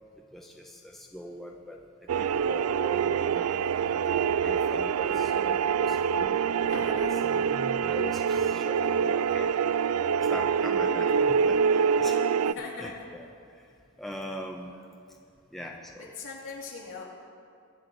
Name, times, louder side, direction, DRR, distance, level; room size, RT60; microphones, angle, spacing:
voice 1, 0.3-1.8 2.2-3.6 4.1-6.6 6.8-9.5 10.3-12.1 12.8-13.3 14.0-14.8 15.5-16.1, equal, ahead, -1 dB, 0.6 m, -41 dB
sound 1, 2.1-12.5, right 7 dB, 85° right, 0.3 m, -25 dB
voice 2, 6.6-7.3 12.4-13.0 16.2-17.0, left 3 dB, 65° left, -5 dB, 3.0 m, -40 dB
23.0 x 8.2 x 3.9 m, 2.4 s
head